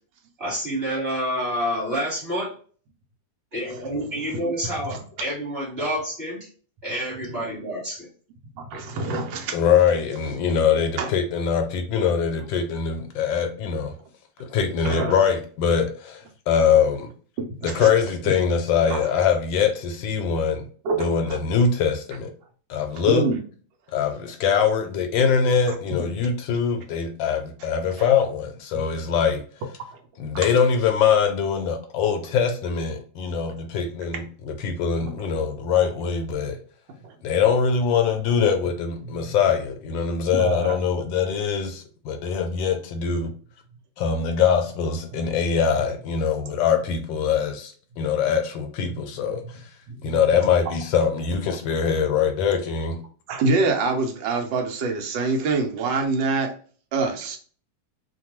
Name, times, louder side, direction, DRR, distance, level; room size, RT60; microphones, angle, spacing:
voice 1, 0.4-2.5 3.5-6.5 6.8-8.1, equal, 35° right, 1.5 m, -28 dB
voice 2, 8.6-9.6 11.0-11.1 14.8-15.1 17.4-17.9 18.9-19.0 20.8-21.4 23.1-23.4 28.0-28.1 28.7-28.8 30.3-30.5 35.0-35.1 37.0-37.1 39.0-39.3 40.3-40.9 48.9-49.0 49.9-50.2 53.3-56.5 56.9-57.4, right 3 dB, 80° right, 1.3 m, -26 dB
voice 3, 9.5-13.9 14.5-17.1 17.6-20.7 21.0-22.3 22.7-23.2 23.9-29.4 30.2-36.6 37.2-43.3 44.0-49.6 50.0-53.0, left 6 dB, 80° left, 1.3 m, -23 dB
3.1 x 2.2 x 2.9 m
omnidirectional pair, 2.0 m